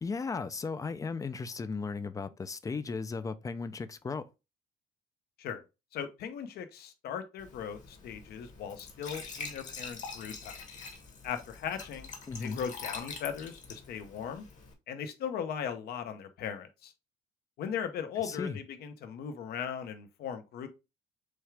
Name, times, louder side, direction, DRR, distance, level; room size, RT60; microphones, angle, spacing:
voice 1, 0.0-4.2 12.3-12.6 18.2-18.6, left 4 dB, 20° left, 0.5 m, -36 dB
voice 2, 5.9-10.6 11.2-12.1 12.4-14.4 14.9-16.9 17.6-20.7, left 8 dB, 70° left, 0.9 m, -38 dB
Glass / Trickle dribble / Fill (with liquid), 7.4-14.7, left 4 dB, 45° left, 1.3 m, -45 dB
6.3 x 2.4 x 3.3 m
cardioid pair, 110°, 17 cm